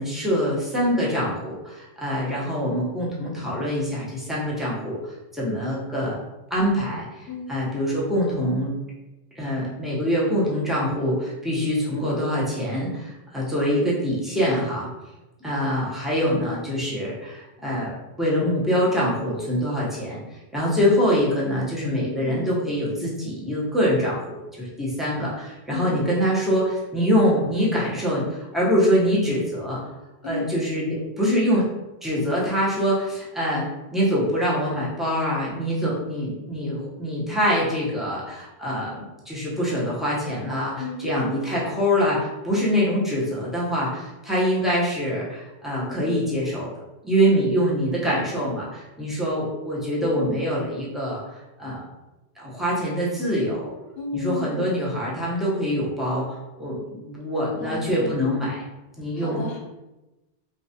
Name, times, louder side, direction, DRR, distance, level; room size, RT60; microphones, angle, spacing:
voice 1, 0.0-5.0 5.3-6.2 6.5-8.7 9.4-14.9 15.4-20.2 20.5-29.8 30.2-31.7 32.0-46.7 47.0-51.2 51.6-51.8 52.4-53.7 54.1-58.6 59.0-59.4, equal, ahead, -7 dB, 0.6 m, -24 dB
voice 2, 7.3-7.6 22.0-22.7 25.7-26.0 30.2-30.6 40.8-41.1 45.9-46.2 50.0-50.4 54.0-54.7 57.6-58.4 59.1-59.6, left 4 dB, 65° left, -2 dB, 0.9 m, -33 dB
3.1 x 2.3 x 2.7 m, 1.0 s
omnidirectional pair, 1.1 m